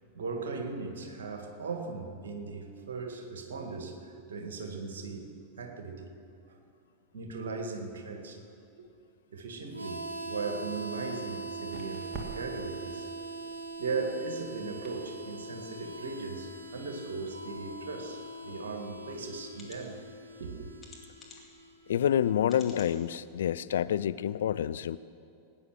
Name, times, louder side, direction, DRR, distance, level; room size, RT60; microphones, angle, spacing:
voice 1, 0.1-6.1 6.5-6.6 7.1-8.4 8.8-8.9 9.3-13.1 13.8-20.0 20.4-20.7, right 4 dB, 60° right, 5 dB, 1.9 m, -38 dB
Harmonica, 9.7-22.3, right 2 dB, 80° right, 0.9 m, -42 dB
sound 1, 10.4-22.8, right 3 dB, 25° right, 2.5 m, -53 dB
sound 2, 18.8-18.9 19.5-19.8 20.8-21.6 22.5-22.9 23.5-23.6 23.9-24.0, left 4 dB, 20° left, 2.4 m, -51 dB
voice 2, 21.9-25.0, left 10 dB, 60° left, 15 dB, 0.4 m, -28 dB
19.0 x 9.4 x 6.4 m, 2.6 s
figure-of-eight pair, 90°, 0 cm